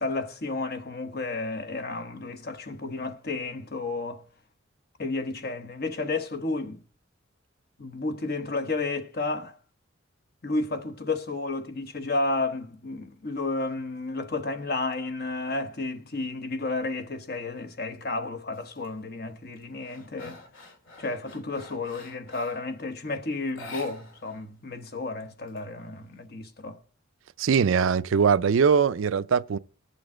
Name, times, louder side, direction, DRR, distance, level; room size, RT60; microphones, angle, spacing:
voice 1, 0.0-4.2 5.0-6.8 7.8-9.6 10.4-20.4 21.0-26.8, left 3 dB, 50° left, 1.1 m, -32 dB
sound 1, 18.5-18.9 19.3-22.7 23.5-24.4 24.7-24.8 25.2-26.1, left 2 dB, 70° left, 2.2 m, -47 dB
voice 2, 27.4-29.6, right 6 dB, 75° right, 0.4 m, -21 dB
20.0 x 7.0 x 3.7 m
head